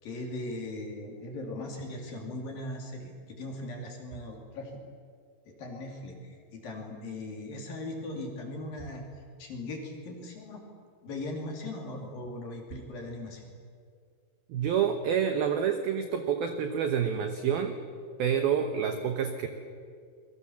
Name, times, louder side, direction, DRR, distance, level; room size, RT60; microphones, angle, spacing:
voice 1, 0.0-4.7 5.5-9.0 9.4-10.6 11.0-13.5, left 2 dB, 50° left, 1 dB, 4.4 m, -39 dB
voice 2, 14.5-17.8 18.2-19.5, right 8 dB, 80° right, 7 dB, 2.2 m, -28 dB
28.0 x 22.5 x 7.3 m, 2.2 s
omnidirectional pair, 5.9 m